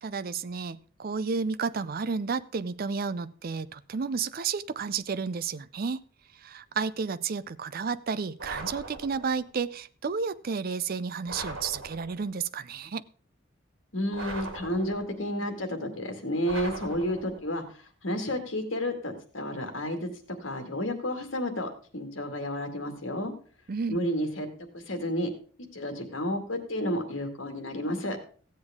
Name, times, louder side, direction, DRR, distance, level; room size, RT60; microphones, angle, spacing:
voice 1, 0.0-6.0 6.3-13.1 23.7-24.0, right 5 dB, 45° right, 0.4 m, -32 dB
sound 1, 8.4-9.5 11.3-12.4 14.1-15.3 16.4-17.6, right 2 dB, 75° right, 2.6 m, -40 dB
voice 2, 13.9-20.1 20.4-23.3 23.9-24.5 24.7-25.3 25.7-28.2, equal, 70° left, 2.1 m, -31 dB
15.5 x 8.0 x 3.6 m
head